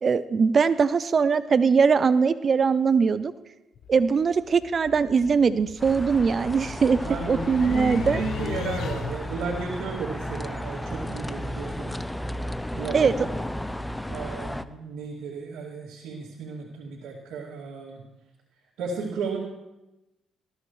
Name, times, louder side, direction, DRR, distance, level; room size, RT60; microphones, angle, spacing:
voice 1, 0.0-3.3 3.9-7.0 7.3-8.2 12.9-13.1, right 5 dB, 45° right, 14 dB, 0.5 m, -21 dB
sound 1, 3.8-9.4, left 7 dB, 70° left, 0.8 m, -37 dB
sound 2, 5.8-14.6, equal, 5° left, 0.6 m, -34 dB
voice 2, 7.0-11.9 12.7-13.3 14.1-18.0 18.8-19.4, right 4 dB, 85° right, -6 dB, 2.4 m, -34 dB
20.0 x 14.5 x 3.2 m, 1.0 s
cardioid pair, 90°, 0 cm